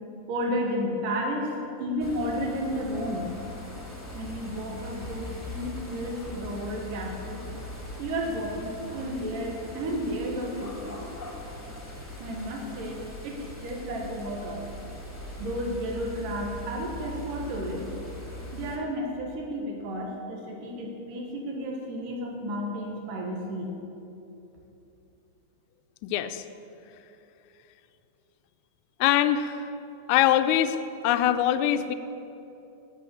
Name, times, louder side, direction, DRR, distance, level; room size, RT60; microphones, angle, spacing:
voice 1, 0.3-1.5 1.8-3.3 4.1-7.4 8.0-11.0 12.2-13.0 13.2-14.6 15.4-17.9 18.5-23.7, equal, 85° right, 0 dB, 3.2 m, -32 dB
sound 1, 2.0-18.8, left 1 dB, 10° left, 1.0 m, -40 dB
voice 2, 26.0-26.5 29.0-29.7 30.1-30.8 31.0-31.9, left 11 dB, 80° left, 10 dB, 1.9 m, -23 dB
17.0 x 6.2 x 7.1 m, 2.9 s
omnidirectional pair, 3.7 m